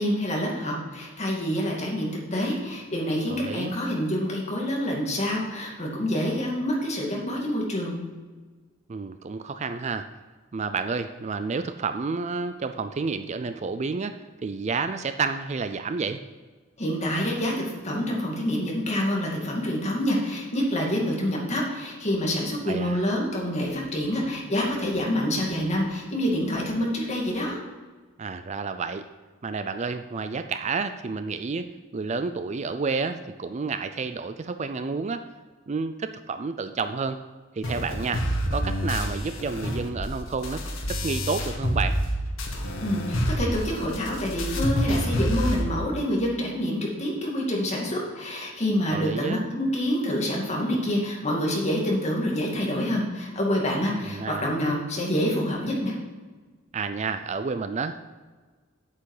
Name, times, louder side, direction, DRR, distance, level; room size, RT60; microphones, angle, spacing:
voice 1, 0.0-8.0 16.8-27.6 42.8-55.9, equal, 35° left, -2 dB, 2.4 m, -27 dB
voice 2, 3.3-3.7 8.9-10.1 10.5-16.2 22.7-23.0 28.2-29.1 29.4-35.2 35.7-37.2 37.5-38.3 38.5-42.0 48.9-49.5 54.1-54.5 56.7-58.0, right 4 dB, 35° right, 10 dB, 0.4 m, -30 dB
sound 1, 37.6-42.1 42.4-45.6, equal, 85° left, 1.7 m, -28 dB
8.3 x 8.2 x 4.9 m, 1.4 s
head